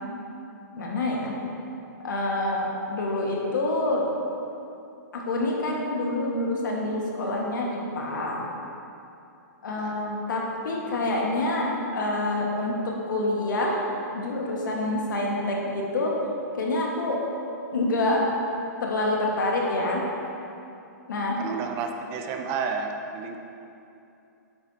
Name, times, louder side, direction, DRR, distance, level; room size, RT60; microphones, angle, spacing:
voice 1, 0.8-1.4 2.0-4.1 5.1-8.4 9.6-12.7 13.1-13.8 14.1-16.1 16.5-17.2 17.7-18.3 18.8-20.0 21.1-21.5, left 2 dB, 85° left, -2 dB, 1.7 m, -27 dB
voice 2, 9.7-10.1 21.4-23.4, right 5 dB, 25° right, 4 dB, 0.5 m, -31 dB
9.0 x 7.6 x 2.9 m, 2.7 s
hypercardioid pair, 155°, 10 cm